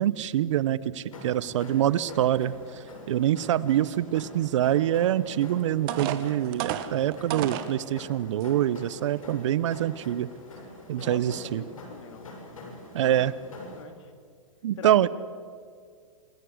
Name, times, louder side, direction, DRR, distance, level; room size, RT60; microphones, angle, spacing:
voice 1, 0.0-2.5 3.1-10.3 10.9-11.6 12.9-13.3 14.6-15.1, right 12 dB, 65° right, 19 dB, 1.0 m, -25 dB
sound 1, 1.1-13.8, left 2 dB, 80° left, 6.8 m, -45 dB
sound 2, 5.3-5.4 5.9-7.7 8.4-8.5 9.0-9.2, right 11 dB, 45° right, 1.9 m, -32 dB
voice 2, 10.9-12.3 13.8-14.1 14.8-15.1, left 7 dB, 65° left, 8 dB, 3.2 m, -43 dB
28.0 x 20.0 x 8.0 m, 2.1 s
hypercardioid pair, 125°, 17 cm